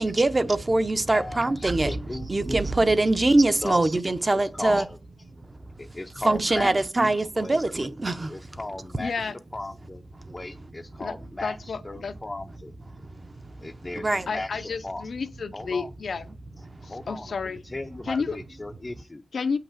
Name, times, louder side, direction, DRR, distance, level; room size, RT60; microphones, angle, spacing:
voice 1, 0.0-2.0 2.3-4.8 6.2-8.3 10.2-10.3 14.0-14.3, right 2 dB, 25° right, 0.7 m, -23 dB
voice 2, 1.1-2.6 3.6-3.8 4.3-5.0 5.8-6.9 7.3-7.6 8.3-9.1 9.5-10.0 10.3-12.7 13.6-15.1 15.5-15.9 16.8-19.2, left 2 dB, 20° left, 0.5 m, -36 dB
voice 3, 9.0-9.4 11.0-11.1 11.4-12.1 14.3-16.3 16.8-17.6 18.0-18.4 19.3-19.6, left 5 dB, 70° left, 0.6 m, -31 dB
8.7 x 5.9 x 7.3 m
wide cardioid pair, 135°, 0 cm